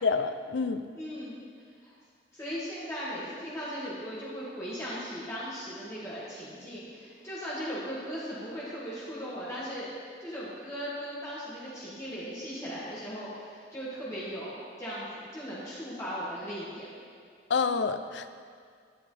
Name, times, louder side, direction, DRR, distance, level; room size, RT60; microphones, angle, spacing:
voice 1, 0.0-0.9 17.5-18.3, left 5 dB, 75° left, 10 dB, 0.5 m, -28 dB
voice 2, 0.9-1.4 1.8-1.9 2.3-9.9 10.2-16.9, equal, 15° left, -10 dB, 2.1 m, -38 dB
12.5 x 10.5 x 3.4 m, 2.1 s
head